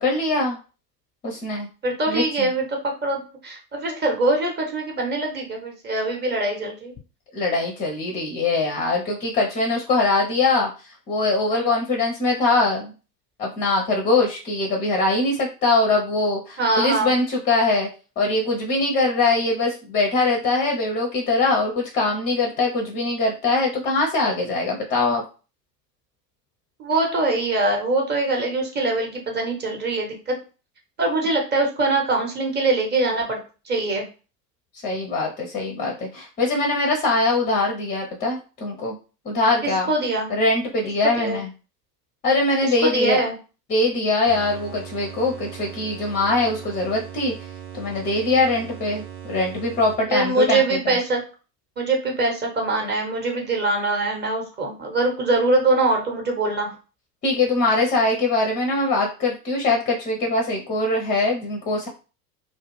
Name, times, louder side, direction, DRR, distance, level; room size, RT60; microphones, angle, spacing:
voice 1, 0.0-0.6 1.2-1.7 2.1-2.5 7.3-10.7 11.1-12.9 13.4-17.9 18.2-25.2 34.8-39.0 39.2-39.9 40.3-41.5 42.2-43.2 43.7-47.3 47.7-51.0 57.2-61.9, left 2 dB, 20° left, 1 dB, 0.5 m, -22 dB
voice 2, 1.8-6.9 11.5-11.7 16.6-17.1 26.8-30.4 31.0-33.4 33.7-34.0 39.6-40.3 41.0-41.4 42.6-43.3 50.1-51.2 51.8-56.7, right 2 dB, 20° right, 1 dB, 0.9 m, -23 dB
sound 1, 44.3-50.4, right 10 dB, 70° right, 0.8 m, -39 dB
2.3 x 2.2 x 3.1 m, 0.34 s
figure-of-eight pair, 85°, 49 cm